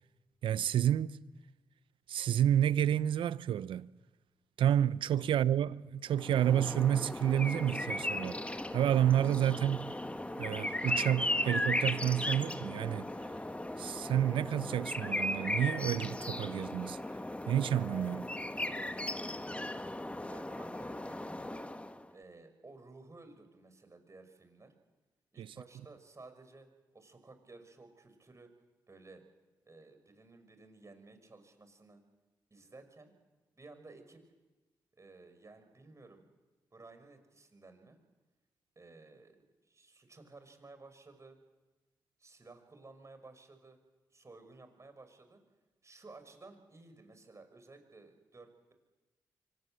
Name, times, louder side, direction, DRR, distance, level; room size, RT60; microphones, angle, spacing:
voice 1, 0.4-1.2 2.1-3.9 4.6-9.9 10.4-13.1 13.8-17.0 17.5-18.3 25.4-25.5, right 10 dB, 80° right, 0.7 m, -30 dB
sound 1, 6.1-22.1, left 1 dB, 15° left, 1.4 m, -37 dB
voice 2, 19.5-19.9 20.3-21.7 22.1-24.7 25.3-28.5 28.9-29.2 29.7-32.0 32.5-33.1 33.6-34.2 35.0-36.2 36.7-38.0 38.8-39.4 39.7-41.4 42.2-43.8 44.1-45.4 45.8-48.7, right 3 dB, 35° right, 5.8 m, -55 dB
24.5 x 18.5 x 7.8 m
supercardioid pair, 45°, 9 cm